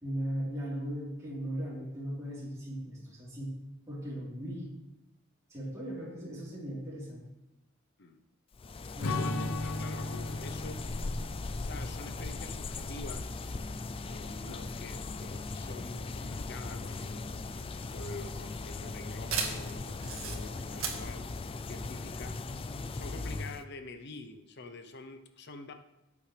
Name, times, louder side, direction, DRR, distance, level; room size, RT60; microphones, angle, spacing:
voice 1, 0.0-3.5 3.9-4.7 5.5-7.3 9.0-9.3, equal, 15° right, -8 dB, 3.9 m, -37 dB
sound 1, 8.5-23.6, left 3 dB, 25° left, 0.4 m, -39 dB
Strum, 9.0-13.7, left 2 dB, 85° left, 0.8 m, -38 dB
voice 2, 9.0-10.9 11.6-13.4 14.1-17.3 17.9-21.3 21.7-22.4 22.9-25.7, left 3 dB, 50° left, 8 dB, 0.8 m, -46 dB
sound 2, 17.5-22.5, right 6 dB, 80° right, 1.8 m, -39 dB
13.0 x 8.5 x 3.4 m, 0.89 s
head